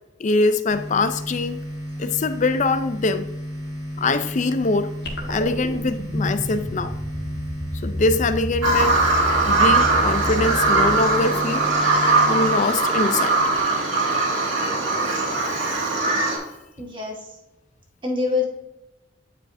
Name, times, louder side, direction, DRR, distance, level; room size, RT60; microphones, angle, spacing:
voice 1, 0.2-1.6 2.0-3.2 4.0-4.9 5.3-6.9 7.8-9.0 9.5-11.6 12.3-13.4 15.1-15.2, left 3 dB, 40° left, 11 dB, 0.4 m, -23 dB
sound 1, 0.7-13.6, equal, 5° right, 2.4 m, -34 dB
sound 2, 5.0-11.6, left 1 dB, 60° left, 1.4 m, -31 dB
Bird vocalization bird call bird song, 8.6-16.4, right 3 dB, 80° right, 2.0 m, -20 dB
voice 2, 16.8-17.3 18.0-18.5, left 4 dB, 25° right, -2 dB, 1.4 m, -25 dB
9.9 x 4.9 x 2.6 m, 0.96 s
head